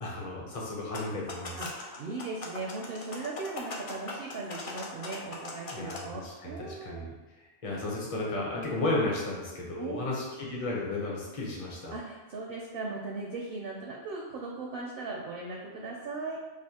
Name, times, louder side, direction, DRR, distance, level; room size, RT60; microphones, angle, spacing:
voice 1, 0.0-1.6 5.7-7.1 7.6-12.0, left 2 dB, 35° left, -4 dB, 0.7 m, -33 dB
sound 1, 0.8-6.0, left 2 dB, 65° left, 0.3 m, -41 dB
voice 2, 1.6-7.1 9.8-10.1 11.9-16.4, right 3 dB, 60° right, -1 dB, 0.6 m, -38 dB
4.9 x 2.1 x 2.8 m, 1.3 s
omnidirectional pair, 1.3 m